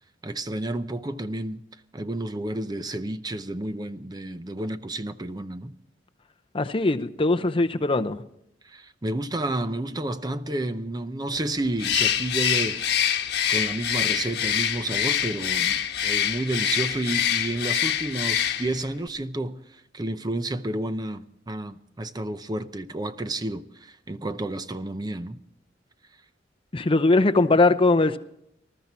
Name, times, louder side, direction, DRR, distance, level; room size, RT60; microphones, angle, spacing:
voice 1, 0.2-1.6 1.9-5.8 8.6-12.8 13.1-25.4, right 1 dB, 20° right, 0.6 m, -31 dB
voice 2, 6.5-8.2 26.7-28.2, left 2 dB, 30° left, 0.7 m, -21 dB
Bird, 11.8-18.9, left 9 dB, 60° left, 1.3 m, -25 dB
20.0 x 13.5 x 4.3 m
head